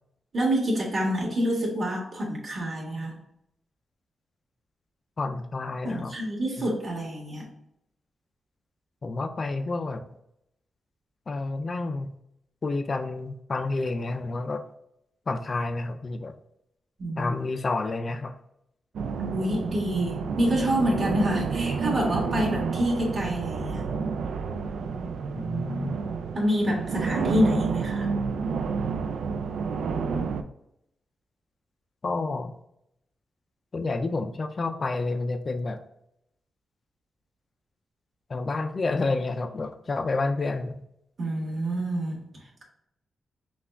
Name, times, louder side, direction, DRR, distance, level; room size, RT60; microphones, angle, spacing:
voice 1, 0.3-3.2 5.8-7.4 17.0-17.3 19.3-23.9 26.3-28.1 41.2-42.2, equal, 45° right, -3 dB, 1.7 m, -27 dB
voice 2, 5.2-6.1 6.6-6.7 9.0-10.1 11.3-12.1 12.6-14.6 15.3-16.3 17.2-18.3 25.4-26.0 32.0-32.5 33.7-35.8 38.3-40.8, left 3 dB, 40° left, 8 dB, 0.4 m, -29 dB
sound 1, 18.9-30.4, right 5 dB, 85° right, 0.4 m, -30 dB
5.8 x 2.3 x 3.3 m, 0.78 s
cardioid pair, 110°, 0 cm